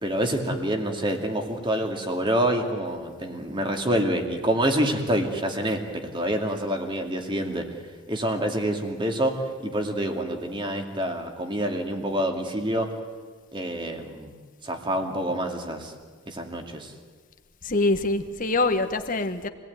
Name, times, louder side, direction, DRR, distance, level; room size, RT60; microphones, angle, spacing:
voice 1, 0.0-7.6 8.1-12.9 13.5-14.3 14.6-15.9 16.3-16.9, right 1 dB, 25° right, 4 dB, 2.4 m, -27 dB
voice 2, 17.6-19.5, left 2 dB, 40° left, 7 dB, 1.5 m, -24 dB
26.5 x 18.5 x 9.4 m, 1.5 s
head